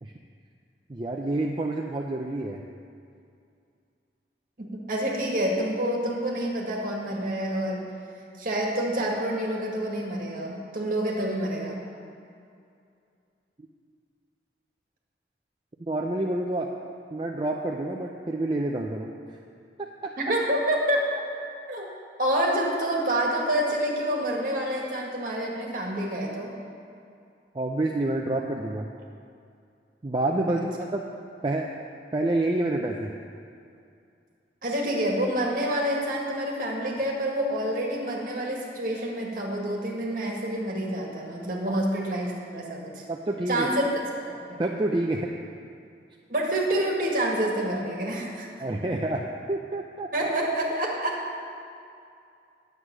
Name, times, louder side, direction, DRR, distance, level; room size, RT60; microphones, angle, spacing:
voice 1, 0.9-2.6 15.8-16.7 17.1-19.1 20.0-20.1 27.5-28.9 30.0-31.0 31.4-31.7 32.1-33.1 41.7-41.8 43.1-43.7 44.6-45.3 48.6-50.3, right 2 dB, 25° right, 0 dB, 0.5 m, -28 dB
voice 2, 4.6-7.9 8.4-11.8 20.2-21.0 21.7-21.9 22.2-26.5 30.5-30.6 34.6-43.0 43.5-43.8 44.2-44.6 46.3-48.5 50.1-51.2, right 1 dB, 50° right, -1 dB, 1.8 m, -28 dB
9.6 x 8.1 x 6.1 m, 2.4 s
head